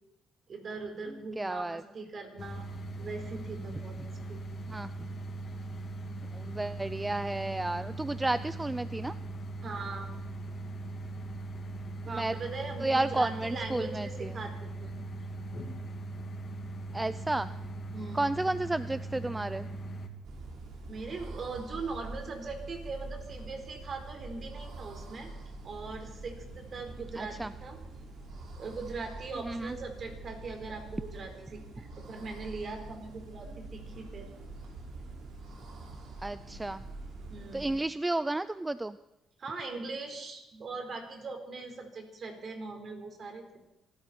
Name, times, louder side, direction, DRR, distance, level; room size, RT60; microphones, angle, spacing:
voice 1, 0.5-2.7 3.0-4.0 4.3-4.4 9.6-10.2 12.0-14.9 17.9-18.4 20.9-25.3 25.6-27.8 28.6-34.3 37.3-37.8 39.4-43.6, right 3 dB, 50° right, 5 dB, 4.2 m, -40 dB
voice 2, 1.4-1.8 4.7-4.9 6.3-9.1 12.1-12.3 12.8-14.3 16.9-17.5 18.1-19.7 27.2-27.5 29.4-29.7 36.2-36.8 37.5-39.0, right 2 dB, 15° right, 14 dB, 0.5 m, -32 dB
sound 1, 2.4-20.1, right 2 dB, 50° left, 2.7 m, -40 dB
sound 2, 20.2-37.8, right 2 dB, 70° right, 4.0 m, -45 dB
24.5 x 13.5 x 4.4 m, 0.89 s
cardioid pair, 90°, 0 cm